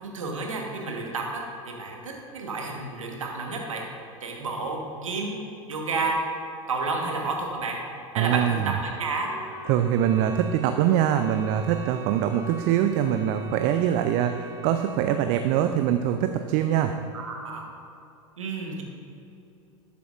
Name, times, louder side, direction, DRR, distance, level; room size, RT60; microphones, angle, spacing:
voice 1, 0.0-3.8 4.2-5.4 5.7-6.2 6.7-7.8 8.1-8.6 9.0-9.3 17.1-17.6 18.4-18.8, right 3 dB, 75° right, 0 dB, 1.3 m, -31 dB
voice 2, 8.2-8.7 9.7-16.9, right 10 dB, 45° right, 8 dB, 0.4 m, -23 dB
Wind instrument woodwind instrument, 9.3-15.0, left 1 dB, 20° right, 0.8 m, -41 dB
12.0 x 6.8 x 2.5 m, 2.7 s
figure-of-eight pair, 80°, 17 cm